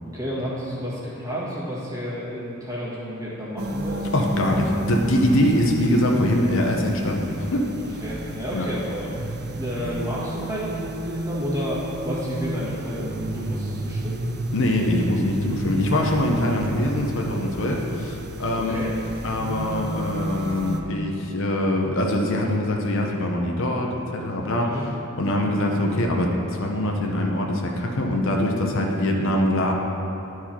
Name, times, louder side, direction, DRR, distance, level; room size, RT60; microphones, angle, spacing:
voice 1, 0.0-4.1 7.8-14.2 18.5-18.9 24.6-24.8, equal, 15° right, -8 dB, 1.8 m, -31 dB
sound 1, 3.6-20.8, right 1 dB, 45° right, 0.6 m, -31 dB
voice 2, 4.1-7.6 8.5-8.7 14.5-18.9 19.2-24.8 25.2-29.7, left 1 dB, 60° left, 1 dB, 0.8 m, -23 dB
11.0 x 4.7 x 4.4 m, 3.0 s
head